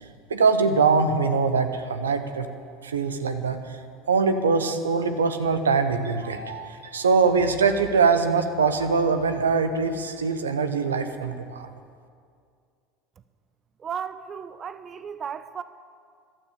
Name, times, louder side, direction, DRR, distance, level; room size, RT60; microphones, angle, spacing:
voice 1, 0.0-2.5 2.8-3.6 4.1-11.7, right 4 dB, 80° right, 9 dB, 1.0 m, -23 dB
voice 2, 13.8-15.6, right 7 dB, 35° right, 13 dB, 0.5 m, -34 dB
15.0 x 12.0 x 7.1 m, 2.2 s
figure-of-eight pair, 75°, 0 cm